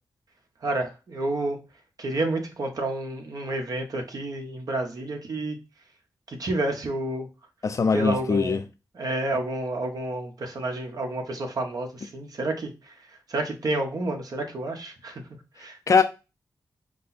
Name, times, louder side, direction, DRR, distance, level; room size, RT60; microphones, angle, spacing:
voice 1, 0.6-1.6 2.0-5.6 6.3-7.3 7.9-8.6 8.9-12.7 13.3-15.2 15.6-15.8, right 2 dB, 65° right, 1.3 m, -29 dB
voice 2, 7.6-8.6 15.9-16.0, left 5 dB, 50° left, 0.5 m, -21 dB
5.0 x 2.2 x 4.1 m
cardioid pair, 70°, 7 cm